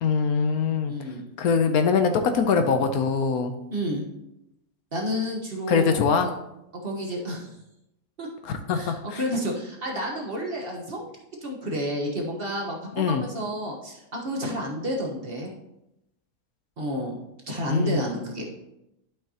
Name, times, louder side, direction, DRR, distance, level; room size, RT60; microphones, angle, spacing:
voice 1, 0.0-0.9 1.4-3.5 5.7-6.3 8.4-9.2 13.0-13.2 17.7-18.0, left 5 dB, 70° left, 7 dB, 1.1 m, -23 dB
voice 2, 0.9-1.2 3.7-4.0 4.9-6.3 6.8-7.5 8.2-8.3 8.7-11.1 11.4-15.5 16.8-17.2 17.5-18.4, equal, 40° right, -1 dB, 1.4 m, -30 dB
11.5 x 5.5 x 2.9 m, 0.86 s
omnidirectional pair, 1.7 m